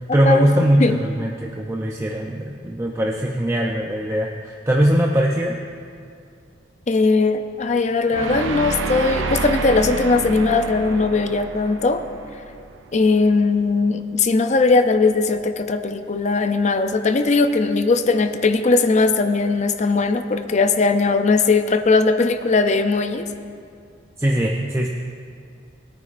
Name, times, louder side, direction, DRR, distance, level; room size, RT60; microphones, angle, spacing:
voice 1, 0.1-5.6 24.2-24.9, equal, 15° right, -1 dB, 0.6 m, -20 dB
voice 2, 6.9-12.0 12.9-23.3, left 3 dB, 40° left, 8 dB, 0.5 m, -19 dB
sound 1, 8.1-13.2, right 3 dB, 85° right, 0.6 m, -28 dB
20.5 x 9.3 x 2.5 m, 2.3 s
head